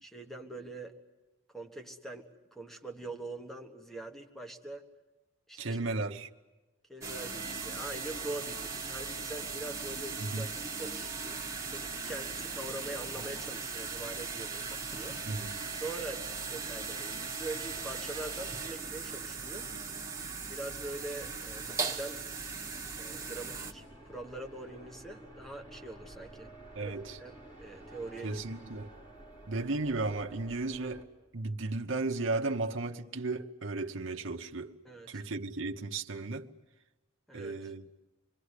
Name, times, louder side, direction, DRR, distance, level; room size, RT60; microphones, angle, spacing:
voice 1, 0.0-0.9 1.5-4.9 5.5-6.0 6.9-11.1 11.7-15.2 15.8-16.2 16.5-19.7 20.5-22.2 23.0-26.5 26.8-26.9 27.2-28.4 34.8-35.2 37.3-37.7, right 2 dB, ahead, 1.5 m, -43 dB
voice 2, 5.6-6.3 10.2-10.5 15.3-15.6 26.7-27.2 28.2-28.9 29.5-31.1 31.3-34.7 35.1-36.5 37.3-37.9, right 3 dB, 65° right, 1.0 m, -34 dB
sound 1, 7.0-23.7, right 4 dB, 15° right, 1.6 m, -38 dB
sound 2, 23.0-31.0, right 2 dB, 20° left, 3.0 m, -51 dB
27.0 x 22.0 x 8.2 m
head